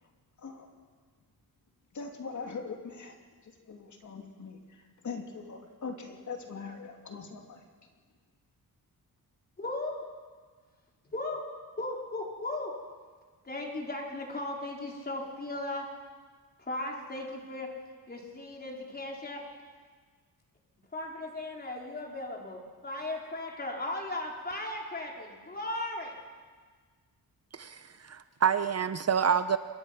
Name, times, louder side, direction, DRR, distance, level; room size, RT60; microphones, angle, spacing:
voice 1, 1.9-3.1 3.4-7.6, left 5 dB, 50° left, 2 dB, 2.9 m, -41 dB
voice 2, 9.6-10.0 11.1-11.4 11.8-12.7 13.4-15.9 16.6-17.7 18.1-19.4 20.9-26.2, left 2 dB, 25° left, -1 dB, 4.3 m, -37 dB
voice 3, 27.5-29.6, right 7 dB, 45° right, 11 dB, 0.7 m, -28 dB
27.5 x 23.0 x 5.9 m, 1.5 s
wide cardioid pair, 145°, 37 cm